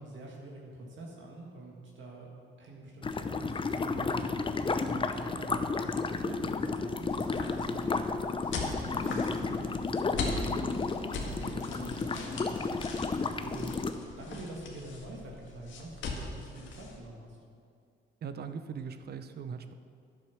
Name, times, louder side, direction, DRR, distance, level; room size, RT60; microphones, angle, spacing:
voice 1, 0.0-2.3 2.6-5.7 6.0-10.8 11.2-12.9 13.4-13.7 14.2-17.4, right 1 dB, 70° right, -2 dB, 2.1 m, -45 dB
sound 1, 3.0-13.9, left 4 dB, 25° left, 0.6 m, -32 dB
sound 2, 7.0-17.0, left 3 dB, 75° left, 1.8 m, -41 dB
voice 2, 18.2-19.7, right 6 dB, 55° right, 10 dB, 0.7 m, -40 dB
10.5 x 7.7 x 6.1 m, 2.3 s
cardioid pair, 90°, 20 cm